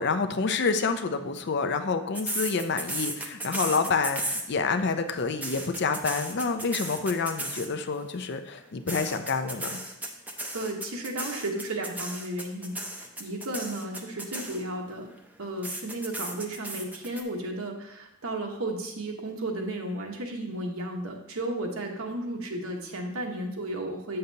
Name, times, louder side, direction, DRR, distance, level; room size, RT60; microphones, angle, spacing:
voice 1, 0.0-9.8, left 4 dB, 55° left, 8 dB, 0.5 m, -28 dB
sound 1, 2.1-4.8 5.2-7.9 8.9-14.9 15.6-17.2, right 1 dB, 5° right, 0.5 m, -35 dB
voice 2, 10.5-15.1 15.4-24.2, right 1 dB, 80° right, 2 dB, 1.1 m, -34 dB
7.9 x 6.6 x 2.8 m, 0.84 s
head